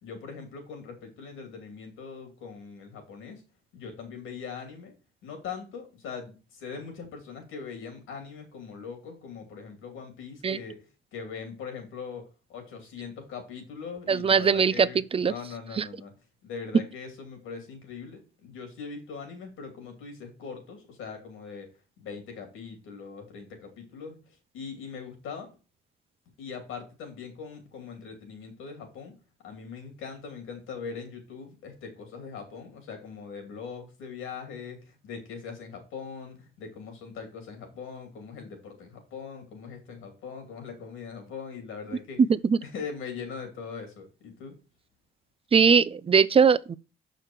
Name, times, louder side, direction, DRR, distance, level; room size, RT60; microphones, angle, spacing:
voice 1, 0.0-3.4 3.7-4.9 5.2-10.8 11.1-12.2 12.5-16.1 16.4-21.7 22.0-24.2 24.5-25.5 26.4-29.1 29.4-42.2 42.6-44.5, left 5 dB, 85° left, 3.0 m, -41 dB
voice 2, 14.1-14.9 15.1-15.3 15.8-15.9 42.5-42.6 45.5-46.8, right 6 dB, 30° right, 0.5 m, -20 dB
6.5 x 5.2 x 4.5 m
cardioid pair, 90°, 20 cm